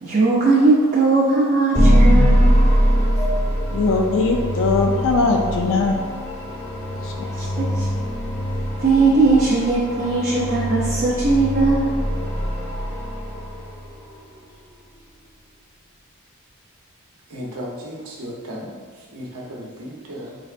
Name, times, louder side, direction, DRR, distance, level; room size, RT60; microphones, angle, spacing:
voice 1, 0.0-2.5 7.4-7.9 8.8-11.9, right 3 dB, 35° right, -6 dB, 0.5 m, -18 dB
sound 1, 1.7-13.9, equal, 15° left, 0.6 m, -21 dB
voice 2, 3.7-6.0 7.0-7.1, left 3 dB, 60° left, 2 dB, 0.3 m, -20 dB
voice 3, 17.3-20.4, equal, 80° right, -2 dB, 0.8 m, -35 dB
4.0 x 3.3 x 2.4 m, 1.5 s
head